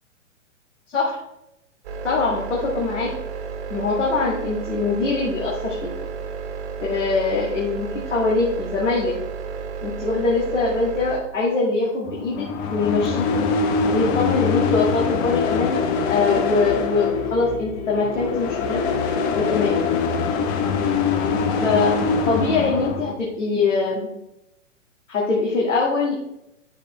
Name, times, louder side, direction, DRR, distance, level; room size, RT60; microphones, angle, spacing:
sound 1, 1.8-11.2, right 6 dB, 35° right, 2.1 m, -32 dB
voice 1, 2.0-3.1 3.7-5.9 6.8-9.1 9.8-13.5 13.9-18.9 19.4-19.8 21.6-24.1 25.1-26.2, left 3 dB, 70° left, -4 dB, 2.2 m, -23 dB
sound 2, 12.1-23.1, left 5 dB, 25° left, 0.8 m, -23 dB
9.9 x 6.5 x 3.2 m, 0.84 s
figure-of-eight pair, 115°, 38 cm